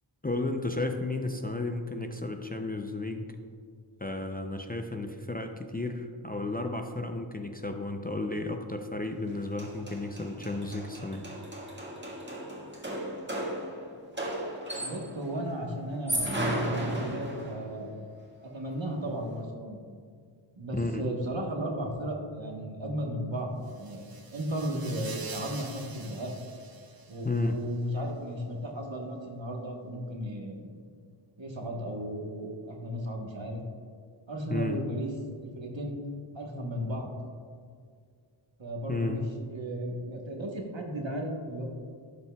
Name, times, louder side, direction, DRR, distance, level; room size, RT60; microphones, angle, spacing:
voice 1, 0.2-3.3 4.0-11.2 20.7-21.0 27.2-27.6 34.5-34.8 38.9-39.2, left 2 dB, 20° left, 4 dB, 0.4 m, -33 dB
sound 1, 9.3-9.4 9.6-15.2 15.9-17.7, right 1 dB, 20° right, 1.6 m, -34 dB
voice 2, 14.8-18.0 18.4-19.8 20.6-26.3 27.1-30.7 31.4-33.6 34.3-35.1 35.4-36.0 36.3-37.2 38.6-41.7, right 1 dB, 65° right, 0 dB, 1.3 m, -35 dB
sound 2, 23.7-27.5, right 4 dB, 45° right, 0.8 m, -46 dB
11.5 x 5.6 x 2.3 m, 2.2 s
wide cardioid pair, 40°, 49 cm